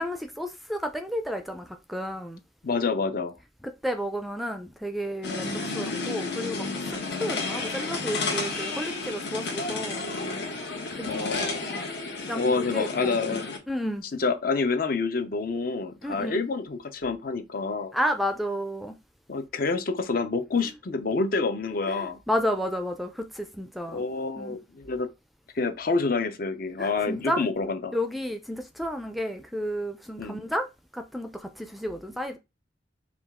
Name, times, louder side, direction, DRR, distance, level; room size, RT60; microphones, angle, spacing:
voice 1, 0.0-2.4 3.6-6.7 7.2-10.1 10.8-11.3 11.6-11.8 12.3-14.0 16.0-16.4 17.9-19.0 21.9-24.0 24.4-24.6 26.8-27.5 27.9-30.7 30.9-32.4, equal, ahead, 0.4 m, -32 dB
voice 2, 2.6-3.3 11.1-11.6 12.3-13.4 14.1-17.9 19.3-22.2 23.9-25.1 25.5-28.0 30.2-30.4, left 4 dB, 55° left, 0.6 m, -28 dB
sound 1, 5.2-13.6, left 3 dB, 70° left, 1.2 m, -32 dB
5.0 x 2.4 x 3.6 m
head